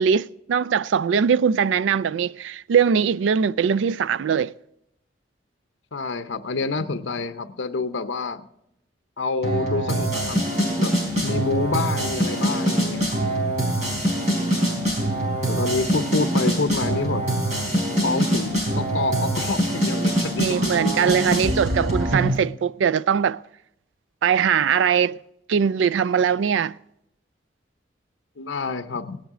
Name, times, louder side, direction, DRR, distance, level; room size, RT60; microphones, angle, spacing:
voice 1, 0.0-4.5 20.4-23.4 24.2-25.2 25.5-26.8, right 7 dB, 80° right, 0.3 m, -21 dB
voice 2, 5.9-8.5 9.2-10.4 10.8-10.9 11.2-13.1 15.5-17.2 18.0-20.5 28.4-29.2, left 3 dB, 80° left, 0.7 m, -27 dB
sound 1, 9.4-22.4, right 1 dB, 40° right, 4.2 m, -24 dB
17.5 x 10.0 x 3.7 m
head